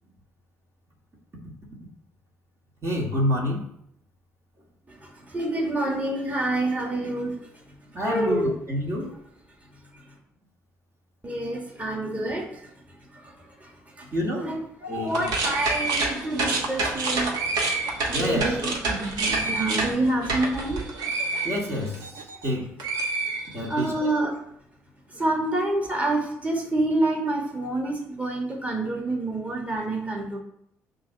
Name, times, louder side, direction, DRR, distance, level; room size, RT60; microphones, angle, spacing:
voice 1, 2.8-3.6 7.9-9.1 14.1-14.6 14.9-15.3 18.1-18.7 21.4-22.1 22.4-22.7 23.5-24.1, equal, 40° right, -2 dB, 2.0 m, -27 dB
voice 2, 5.0-7.6 8.1-8.5 9.9-10.0 11.2-12.7 13.1-14.1 14.4-17.4 18.1-20.8 23.7-24.3 25.1-30.4, right 2 dB, 20° right, -1 dB, 2.1 m, -28 dB
sound 1, 15.1-22.5 22.8-24.0, right 3 dB, 70° right, 1.2 m, -28 dB
6.1 x 3.2 x 5.8 m, 0.72 s
hypercardioid pair, 50°, 7 cm